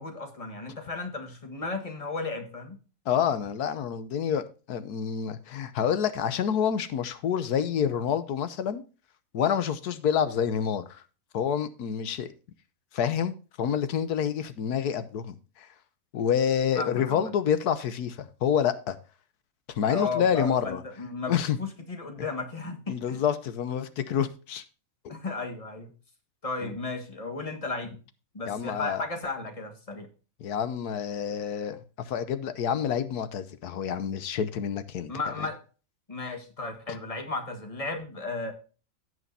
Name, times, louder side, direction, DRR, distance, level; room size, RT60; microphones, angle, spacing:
voice 1, 0.0-2.8 16.7-17.3 19.9-23.2 25.1-25.9 26.4-28.0 28.3-30.1 35.1-35.6 36.1-38.5, left 3 dB, 25° left, 5 dB, 1.6 m, -34 dB
voice 2, 3.1-8.8 9.3-11.0 11.3-12.3 12.9-15.7 16.1-19.0 19.7-20.8 21.3-21.6 22.9-24.6 25.0-25.1 26.6-26.7 28.5-29.0 30.4-35.1, left 8 dB, 90° left, 12 dB, 1.4 m, -28 dB
16.0 x 6.3 x 2.7 m, 0.34 s
omnidirectional pair, 1.6 m